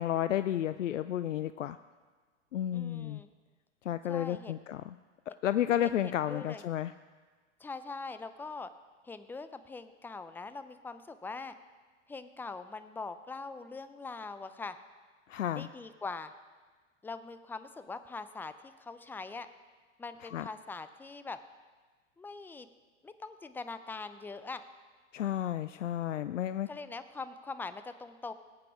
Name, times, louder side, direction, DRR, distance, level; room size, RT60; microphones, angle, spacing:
voice 1, 0.0-1.8 2.5-3.2 3.9-4.9 5.4-6.9 15.3-15.7 20.3-20.5 25.1-26.7, left 11 dB, 85° left, 13 dB, 0.5 m, -32 dB
voice 2, 2.7-3.3 4.1-4.7 5.8-6.6 7.6-8.7 9.0-11.5 12.1-14.8 15.5-16.3 17.0-19.5 20.0-21.4 22.2-22.7 23.0-24.6 26.7-28.3, left 4 dB, 5° left, 11 dB, 0.5 m, -42 dB
20.0 x 8.3 x 4.8 m, 1.4 s
hypercardioid pair, 100°, 36 cm